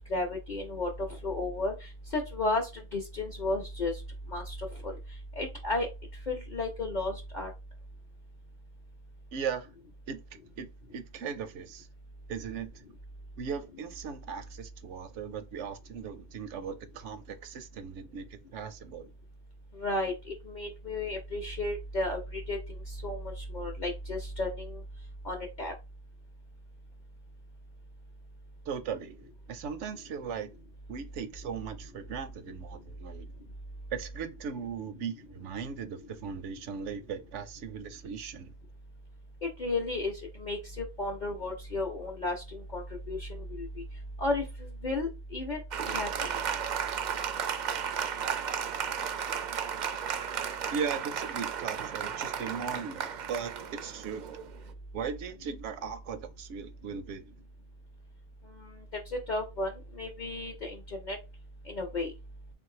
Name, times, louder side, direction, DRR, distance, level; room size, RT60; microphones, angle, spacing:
voice 1, 0.1-0.9 1.2-1.7 2.1-3.9 4.3-4.6 4.8-4.9 5.4-5.9 6.3-7.5 19.8-22.6 22.9-24.8 25.2-25.7 39.4-43.8 44.2-45.6 45.9-46.3 59.1-59.7 60.0-61.2 61.7-62.1, left 2 dB, 45° left, 0.8 m, -33 dB
voice 2, 9.3-9.7 10.1-10.2 10.6-11.9 12.3-12.7 13.4-18.2 18.5-19.1 28.7-29.2 29.5-30.5 30.9-33.3 33.9-38.5 50.7-54.3 54.9-57.2, right 6 dB, 80° right, 0.9 m, -38 dB
Applause, 45.7-54.7, right 7 dB, 60° right, 0.5 m, -34 dB
3.5 x 2.6 x 4.6 m
omnidirectional pair, 1.2 m